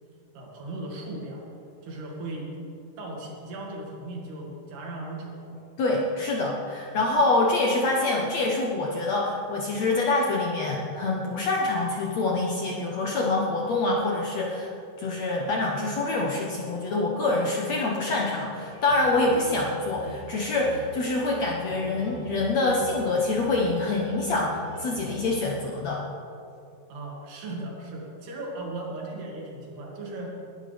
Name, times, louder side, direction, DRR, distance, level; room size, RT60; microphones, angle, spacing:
voice 1, 0.3-1.4 1.8-2.6 3.0-5.5 26.9-30.4, right 2 dB, 90° right, -2 dB, 4.4 m, -37 dB
voice 2, 5.8-14.7 15.0-26.0, left 2 dB, 65° left, -2 dB, 1.7 m, -26 dB
sound 1, 18.5-25.2, right 2 dB, 70° right, 4.8 m, -43 dB
20.5 x 12.0 x 3.4 m, 2.6 s
omnidirectional pair, 4.4 m